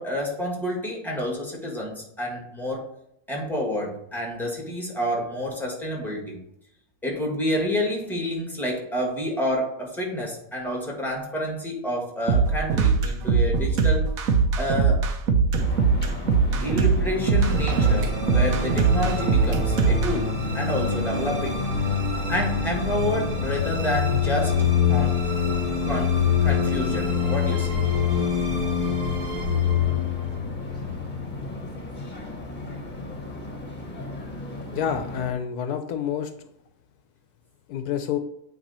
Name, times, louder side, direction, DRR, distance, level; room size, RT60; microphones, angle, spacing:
voice 1, 0.0-2.8 3.3-6.4 7.0-14.1 14.6-15.0 16.6-21.6 22.3-24.6 24.9-25.1 25.8-27.8, equal, ahead, -1 dB, 1.8 m, -29 dB
sound 1, 12.3-20.1, right 5 dB, 65° right, 1.1 m, -21 dB
sound 2, 15.6-35.3, left 2 dB, 30° left, 1.3 m, -36 dB
sound 3, 17.2-31.6, left 6 dB, 50° right, 2.1 m, -25 dB
voice 2, 34.7-36.5 37.7-38.2, left 8 dB, 80° left, 8 dB, 1.1 m, -28 dB
8.7 x 3.3 x 4.2 m, 0.77 s
omnidirectional pair, 1.7 m